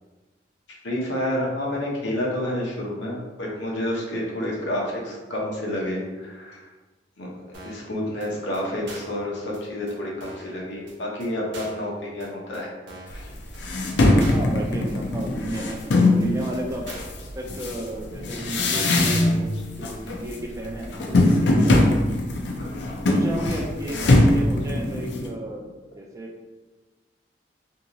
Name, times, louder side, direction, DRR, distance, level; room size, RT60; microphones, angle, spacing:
voice 1, 0.8-6.6 7.2-7.3 7.6-12.7 13.1-13.2 22.6-23.0 23.4-23.5, left 1 dB, 85° left, -3 dB, 0.8 m, -29 dB
sound 1, 7.5-7.9 8.2-8.3 8.5-8.6 8.9-9.2 9.5-9.6 9.9-10.0 10.2-10.5 10.9-11.0 11.2-11.3 11.5-11.9 12.2-12.3 12.5-12.6 12.9-13.2 13.5-13.6 13.9-14.0 14.2-14.5 14.9-15.0 15.2-15.3 15.5-15.9 16.2-16.3 16.5-16.6 16.9-17.2 17.5-17.6 17.9-18.0, right 2 dB, 90° right, 0.7 m, -42 dB
sound 2, 13.1-13.2 13.6-16.3 16.9-19.6 19.8-20.3 20.6-25.3, left 2 dB, 70° left, 0.4 m, -21 dB
voice 2, 14.2-15.9 16.2-16.9 17.2-22.0 23.0-26.5, right 1 dB, 20° right, 0 dB, 0.3 m, -33 dB
2.8 x 2.7 x 2.6 m, 1.2 s
head